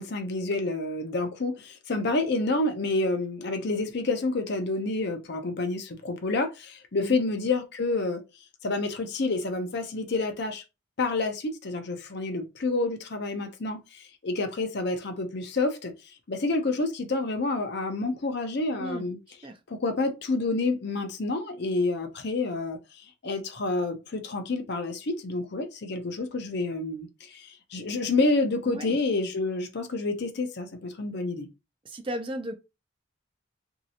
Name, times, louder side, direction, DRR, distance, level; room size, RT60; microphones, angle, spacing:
voice 1, 0.0-8.2 8.6-10.6 11.0-15.9 16.3-19.2 19.7-22.8 23.2-31.5, left 3 dB, 50° left, 0.6 m, -28 dB
voice 2, 28.7-29.0 31.8-32.5, right 1 dB, 25° right, 0.4 m, -35 dB
3.1 x 2.7 x 2.8 m
head